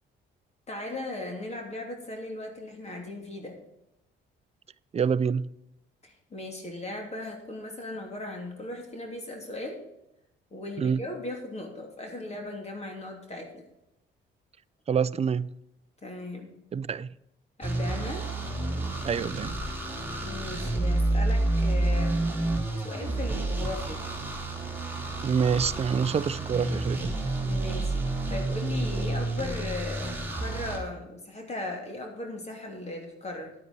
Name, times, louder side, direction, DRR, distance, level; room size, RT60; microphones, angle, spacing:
voice 1, 0.7-3.6 6.0-9.8 10.5-13.6 16.0-16.5 17.6-18.2 20.2-22.2 22.8-24.0 27.4-33.5, left 2 dB, 35° left, 2.9 m, -37 dB
voice 2, 4.9-5.5 10.8-11.0 14.9-15.5 16.7-17.1 19.0-19.6 25.2-27.2, right 6 dB, 30° right, 0.5 m, -26 dB
sound 1, 17.6-30.8, right 2 dB, 10° right, 3.4 m, -29 dB
10.5 x 8.9 x 4.5 m
cardioid pair, 90°, 20 cm